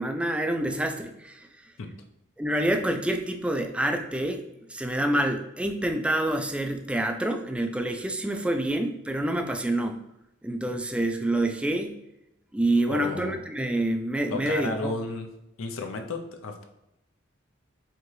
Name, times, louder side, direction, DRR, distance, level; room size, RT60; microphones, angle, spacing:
voice 1, 0.0-1.7 2.4-4.4 4.7-10.0 10.4-12.0 12.5-14.9, right 1 dB, 5° right, 5 dB, 0.3 m, -27 dB
voice 2, 12.9-13.4 14.3-15.3 15.6-16.7, left 3 dB, 75° left, 5 dB, 0.6 m, -33 dB
4.6 x 3.6 x 3.1 m, 0.89 s
head